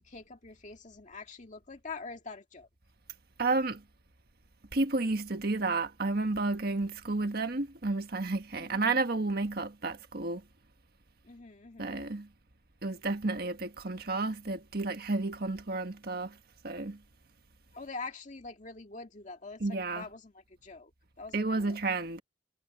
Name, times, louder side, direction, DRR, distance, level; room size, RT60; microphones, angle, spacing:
voice 1, 0.0-2.7 8.6-9.0 11.2-12.1 17.7-19.6 19.9-20.9 21.2-21.8, left 4 dB, 45° left, 2.1 m, -45 dB
voice 2, 3.4-3.8 4.7-10.4 11.8-12.3 12.8-16.4 16.6-17.0 19.6-20.0 21.3-22.2, right 3 dB, 60° right, 1.6 m, -31 dB
head